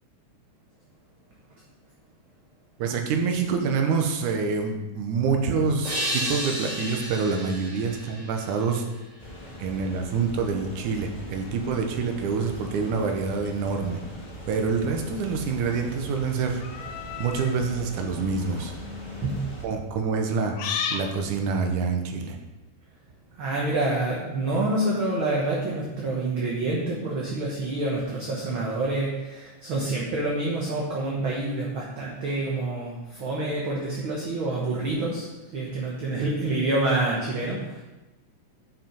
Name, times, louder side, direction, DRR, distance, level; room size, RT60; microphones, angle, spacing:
voice 1, 2.8-8.8 9.6-14.0 14.5-16.9 17.2-18.7 19.6-20.6 20.9-22.4, right 5 dB, 75° right, 4 dB, 2.4 m, -26 dB
sound 1, 5.8-9.3, equal, 15° right, 3.3 m, -32 dB
sound 2, 9.2-19.6, equal, 15° left, 1.3 m, -41 dB
sound 3, 16.6-17.6 18.4-18.7 20.5-21.1, left 7 dB, 80° left, 1.5 m, -32 dB
voice 2, 19.2-19.5 23.3-37.8, right 2 dB, 55° right, -4 dB, 1.6 m, -27 dB
7.8 x 6.1 x 5.2 m, 1.1 s
omnidirectional pair, 3.7 m